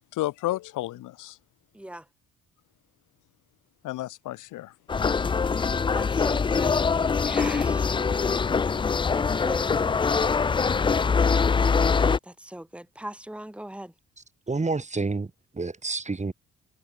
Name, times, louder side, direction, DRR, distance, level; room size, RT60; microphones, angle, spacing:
voice 1, 0.1-1.4 3.8-4.7, left 16 dB, 85° left, 1.2 m, -31 dB
voice 2, 1.7-2.1 5.9-6.8 7.3-7.9 9.1-9.7 12.2-13.9, right 1 dB, 5° right, 2.8 m, -39 dB
sound 1, 4.9-12.2, left 5 dB, 15° left, 0.3 m, -23 dB
voice 3, 14.5-16.3, right 3 dB, 25° right, 5.5 m, -29 dB
cardioid pair, 90°, 30 cm